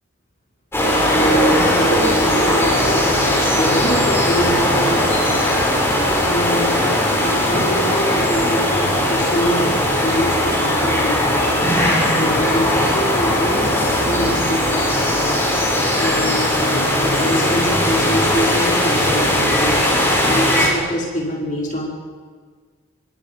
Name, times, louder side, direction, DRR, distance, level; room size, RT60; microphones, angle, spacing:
sound 1, 0.7-20.7, left 1 dB, 15° left, 7.8 m, -18 dB
voice 1, 1.1-5.7 6.2-15.4 16.0-22.0, left 1 dB, 40° left, -2 dB, 5.6 m, -25 dB
29.5 x 24.0 x 5.7 m, 1.5 s
head